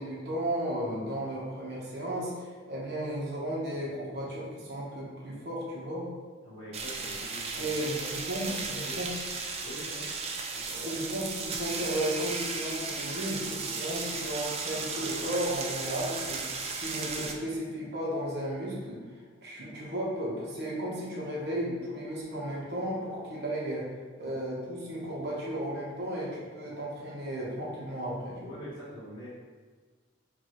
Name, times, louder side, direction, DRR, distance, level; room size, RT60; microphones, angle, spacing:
voice 1, 0.0-6.1 7.6-9.1 10.7-16.4 16.7-23.9 24.2-28.6, right 1 dB, 55° right, -5 dB, 1.1 m, -34 dB
voice 2, 6.4-8.1 8.3-9.0 9.6-10.1 10.5-10.8 28.4-29.3, left 1 dB, 20° left, -11 dB, 1.1 m, -44 dB
sound 1, 6.7-17.3, right 4 dB, 30° right, 0.4 m, -35 dB
5.2 x 2.6 x 3.0 m, 1.5 s
head